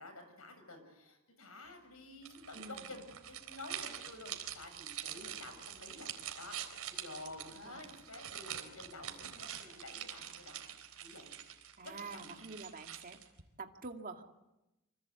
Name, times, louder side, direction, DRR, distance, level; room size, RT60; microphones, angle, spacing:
voice 1, 0.0-6.6 6.9-10.6 11.0-11.3 11.8-12.4, left 2 dB, 75° left, 7 dB, 7.2 m, -51 dB
sound 1, 2.2-13.4, right 10 dB, 80° right, 3.8 m, -46 dB
voice 2, 2.5-2.9 5.9-6.1 7.6-7.9 11.8-13.2 13.6-14.2, right 4 dB, 40° right, 4 dB, 2.3 m, -47 dB
27.0 x 26.0 x 8.2 m, 0.96 s
head